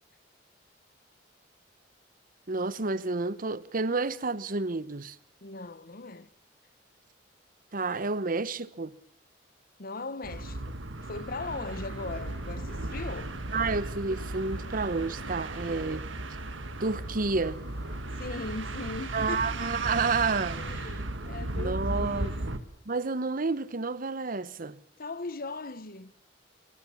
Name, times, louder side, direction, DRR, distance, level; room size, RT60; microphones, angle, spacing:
voice 1, 2.5-5.2 7.7-8.9 13.5-16.1 16.8-17.6 19.1-20.6 21.5-22.3 22.9-24.8, right 3 dB, 50° right, 1.0 m, -30 dB
voice 2, 5.4-6.3 9.8-13.4 18.2-19.4 20.6-22.6 25.0-26.1, left 3 dB, 50° left, 1.1 m, -39 dB
sound 1, 10.2-22.6, right 2 dB, 90° right, 1.8 m, -36 dB
sound 2, 11.7-18.9, left 2 dB, 80° left, 4.0 m, -54 dB
24.5 x 22.5 x 7.2 m
head